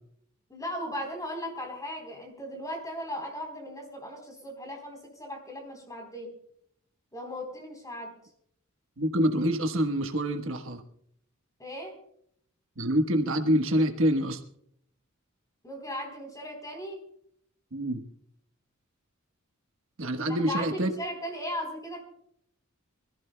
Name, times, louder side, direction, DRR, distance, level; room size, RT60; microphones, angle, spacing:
voice 1, 0.5-6.3 7.1-8.1 11.6-11.9 15.6-17.0 20.3-22.0, equal, 15° left, 3 dB, 3.9 m, -37 dB
voice 2, 9.0-10.8 12.8-14.4 17.7-18.0 20.0-20.9, equal, 65° right, 5 dB, 1.3 m, -26 dB
25.5 x 15.0 x 2.3 m, 0.68 s
head